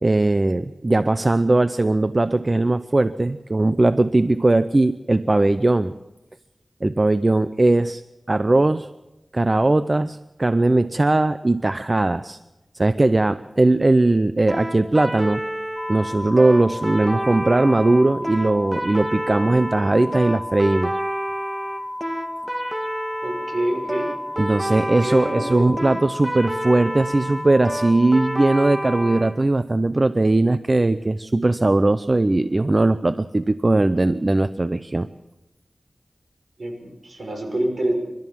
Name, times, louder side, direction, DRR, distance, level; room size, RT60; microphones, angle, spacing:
voice 1, 0.0-5.9 6.8-8.0 8.3-8.9 9.3-12.4 12.7-15.4 15.9-20.9 24.4-35.1, right 2 dB, 40° right, 12 dB, 0.6 m, -19 dB
sound 1, 14.5-29.3, right 1 dB, 20° right, 2.2 m, -29 dB
sound 2, 15.8-29.2, left 1 dB, 10° left, 1.8 m, -33 dB
voice 2, 23.2-24.1 25.0-25.7 36.6-37.9, right 1 dB, 65° right, 2 dB, 6.2 m, -26 dB
28.0 x 13.0 x 7.3 m, 0.99 s
wide cardioid pair, 60°, 0 cm